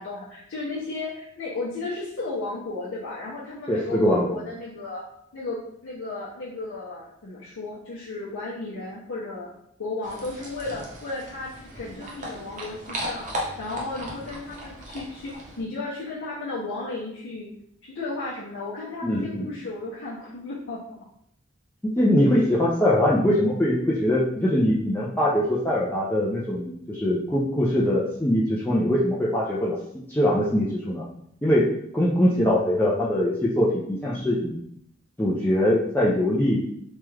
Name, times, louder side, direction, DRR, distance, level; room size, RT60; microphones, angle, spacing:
voice 1, 0.0-5.0 5.3-9.5 9.8-17.5 17.8-20.8, left 3 dB, 70° left, -7 dB, 0.6 m, -34 dB
voice 2, 3.7-4.3 19.0-19.5 22.0-29.8 30.1-31.0 31.4-31.7 31.9-34.6 35.2-36.6, left 1 dB, 10° left, -7 dB, 0.4 m, -22 dB
sound 1, 10.0-15.6, equal, 40° right, 0.7 m, -36 dB
3.0 x 2.3 x 3.1 m, 0.71 s
head